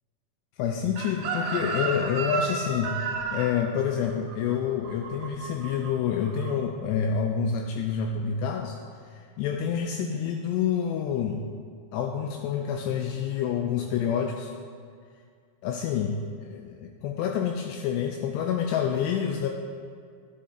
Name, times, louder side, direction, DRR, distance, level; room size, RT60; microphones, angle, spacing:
voice 1, 0.6-3.0 3.3-8.8 9.1-11.4 11.9-14.5 15.6-19.5, left 7 dB, 90° left, 2 dB, 2.4 m, -28 dB
Chicken rooster, 1.0-5.9 6.2-6.5, right 4 dB, 85° right, 1.9 m, -32 dB
11.0 x 6.5 x 3.8 m, 2.1 s
omnidirectional pair, 5.4 m